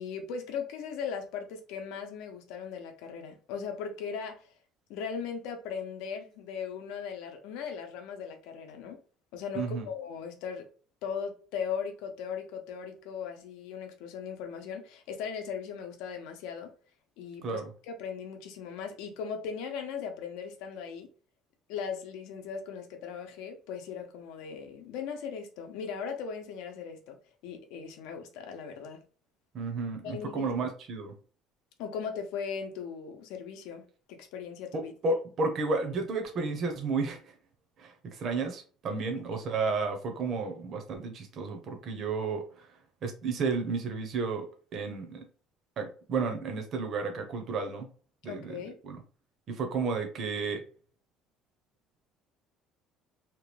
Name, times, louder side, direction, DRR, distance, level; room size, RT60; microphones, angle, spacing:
voice 1, 0.0-4.5 4.9-9.0 9.3-10.6 11.0-16.7 17.2-17.6 17.9-21.1 21.7-27.2 27.4-29.0 30.0-30.6 31.8-33.8 34.1-34.9 39.1-39.2 48.2-48.8, left 6 dB, 85° left, 5 dB, 0.7 m, -38 dB
voice 2, 9.5-9.9 17.4-17.7 29.5-31.1 34.7-37.2 37.8-42.4 43.0-44.5 44.7-45.2 45.8-47.9 48.2-49.0 49.5-50.6, right 4 dB, 35° right, 4 dB, 0.6 m, -32 dB
2.9 x 2.3 x 3.2 m, 0.40 s
cardioid pair, 170°, 0 cm